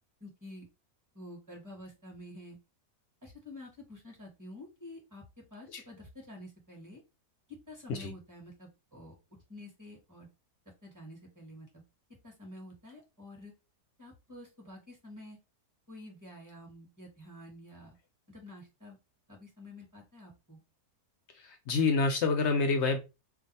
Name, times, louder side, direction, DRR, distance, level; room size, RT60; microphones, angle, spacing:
voice 1, 0.2-0.7 1.1-2.6 3.2-5.2 5.5-7.0 7.7-9.1 9.5-10.3 10.8-11.8 12.2-13.5 14.0-15.4 15.9-17.9 18.3-19.0 19.3-20.6, left 1 dB, 15° right, 0.9 m, -49 dB
voice 2, 21.4-23.0, left 4 dB, 65° left, 0.7 m, -28 dB
2.6 x 2.3 x 4.0 m
omnidirectional pair, 1.6 m